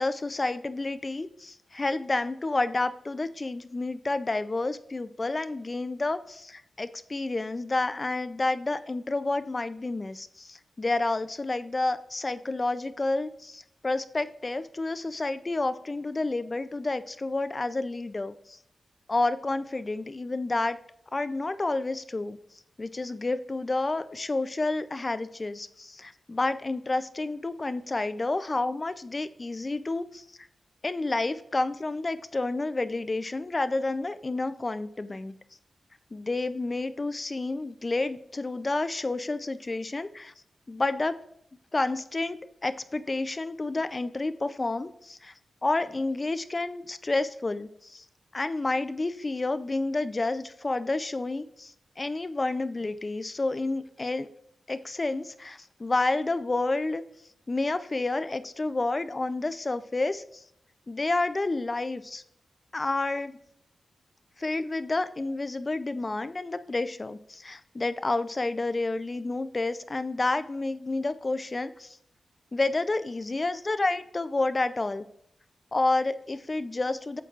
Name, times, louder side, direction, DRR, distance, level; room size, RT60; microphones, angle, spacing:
voice 1, 0.0-18.6 19.1-20.8 21.1-22.4 22.8-30.2 30.8-35.3 36.1-40.3 40.7-41.2 41.7-45.3 45.6-48.0 48.3-54.3 54.7-57.0 57.5-60.4 60.9-62.2 62.7-63.4 64.4-72.0 72.5-75.0 75.7-77.2, left 2 dB, 25° left, 12 dB, 0.4 m, -30 dB
9.1 x 6.9 x 2.4 m, 0.71 s
wide cardioid pair, 130°, 0 cm